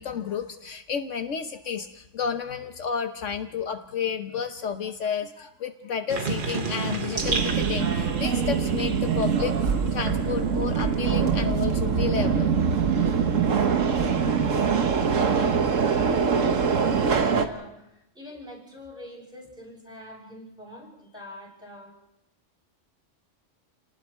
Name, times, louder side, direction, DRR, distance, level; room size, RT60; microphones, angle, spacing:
voice 1, 0.0-9.5 9.9-12.5, left 7 dB, 75° left, 6 dB, 1.3 m, -31 dB
sound 1, 6.1-11.4 11.8-13.5, right 4 dB, 45° right, 1.3 m, -34 dB
Subway metro underground, 7.2-17.5, right 6 dB, 85° right, 1.6 m, -23 dB
voice 2, 15.1-21.9, left 1 dB, 5° right, -2 dB, 7.8 m, -44 dB
30.0 x 19.0 x 4.5 m, 0.86 s
omnidirectional pair, 1.3 m